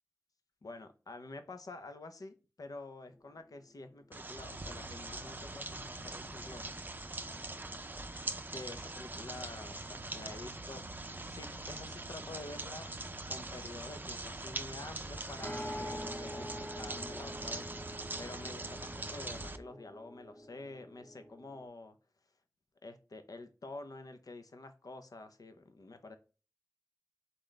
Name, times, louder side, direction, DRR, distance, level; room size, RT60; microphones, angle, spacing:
voice 1, 0.6-6.8 8.5-10.8 11.2-12.9 13.3-17.7 18.2-22.0 22.8-26.2, left 2 dB, 80° left, 8 dB, 0.7 m, -48 dB
sound 1, 3.1-6.9 7.2-7.3 15.4-21.7, equal, 20° left, 0.9 m, -47 dB
sound 2, 4.1-19.6, right 2 dB, 30° right, 0.5 m, -42 dB
3.8 x 3.2 x 3.9 m, 0.34 s
cardioid pair, 40°, 6 cm